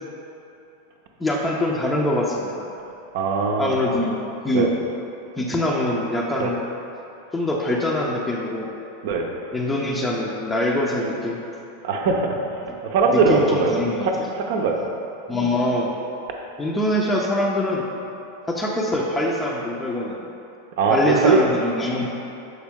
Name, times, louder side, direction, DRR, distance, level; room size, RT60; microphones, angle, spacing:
voice 1, 1.2-2.7 3.6-4.7 5.4-6.6 7.3-8.8 9.5-11.4 13.1-14.3 15.3-15.9 16.6-17.8 18.5-20.2 20.9-22.1, left 1 dB, 10° left, -2 dB, 0.6 m, -24 dB
voice 2, 3.1-3.8 4.5-4.7 6.4-6.5 9.0-9.3 11.8-12.4 12.8-13.8 14.0-14.9 20.8-21.4, right 4 dB, 55° right, 2 dB, 0.7 m, -20 dB
6.5 x 4.3 x 3.5 m, 2.8 s
figure-of-eight pair, 90°, 0 cm